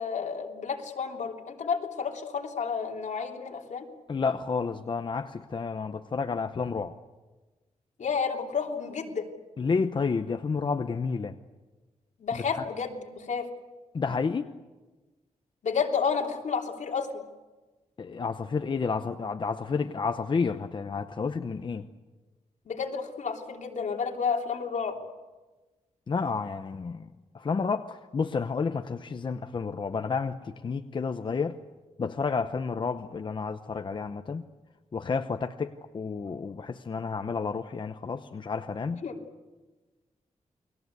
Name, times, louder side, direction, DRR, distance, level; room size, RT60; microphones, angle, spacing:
voice 1, 0.0-3.9 8.0-9.3 12.2-13.5 15.6-17.3 22.7-25.0 39.0-39.2, left 6 dB, 70° left, 1 dB, 3.2 m, -31 dB
voice 2, 4.1-6.9 9.6-11.3 12.3-12.6 13.9-14.5 18.0-21.8 26.1-27.1 27.3-31.6 32.0-34.4 34.9-39.0, left 5 dB, 40° left, 7 dB, 0.8 m, -30 dB
29.5 x 21.5 x 8.1 m, 1.2 s
wide cardioid pair, 170°, 13 cm